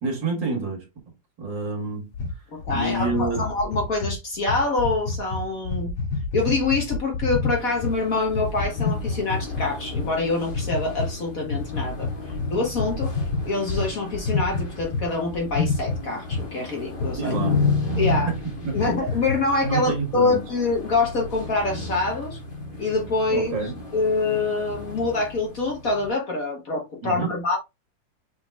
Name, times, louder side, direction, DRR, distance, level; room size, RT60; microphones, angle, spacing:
voice 1, 0.0-0.9 1.4-2.5 2.7-3.5 17.2-17.7 18.3-18.4 18.6-19.0 19.6-20.4 23.3-23.8 27.0-27.4, right 3 dB, 60° right, 2.1 m, -28 dB
sound 1, 2.1-8.0 8.3-10.1 10.5-11.1 11.5-15.1 15.3-16.5 17.0-17.1 17.5-17.7 18.0-18.1 18.6-19.4, left 4 dB, 65° left, 0.8 m, -28 dB
voice 2, 2.5-5.9 6.3-13.1 13.4-17.3 18.0-18.3 18.7-22.4 22.8-23.5 23.9-27.6, left 3 dB, 50° left, 1.4 m, -25 dB
sound 2, 7.5-26.1, left 3 dB, 25° left, 1.6 m, -33 dB
6.0 x 3.9 x 2.2 m
omnidirectional pair, 2.3 m